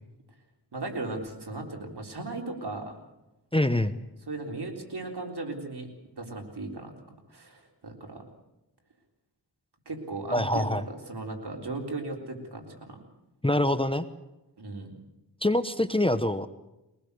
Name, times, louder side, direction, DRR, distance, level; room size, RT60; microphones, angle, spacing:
voice 1, 0.7-3.0 4.3-5.9 6.2-6.9 7.3-8.2 9.9-13.0 14.6-14.9, right 2 dB, 65° right, 1 dB, 4.0 m, -37 dB
voice 2, 3.5-4.0 10.3-10.9 13.4-14.0 15.4-16.5, left 1 dB, 15° left, 11 dB, 1.0 m, -25 dB
22.5 x 19.5 x 6.8 m, 0.98 s
wide cardioid pair, 60°, 42 cm